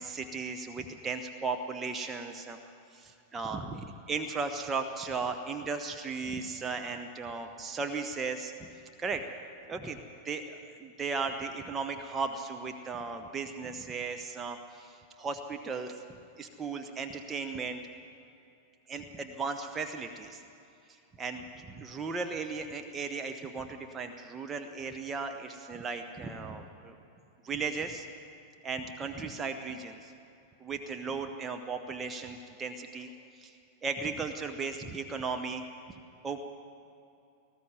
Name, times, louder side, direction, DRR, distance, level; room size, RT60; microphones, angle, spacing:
voice 1, 0.0-2.6 2.9-8.7 9.0-9.2 9.7-15.9 16.4-17.8 18.9-20.4 20.9-27.0 27.4-28.1 28.6-30.1 30.6-35.6 36.2-36.4, right 4 dB, 20° right, 5 dB, 1.2 m, -36 dB
19.5 x 14.0 x 9.3 m, 2.6 s
figure-of-eight pair, 90°, 0 cm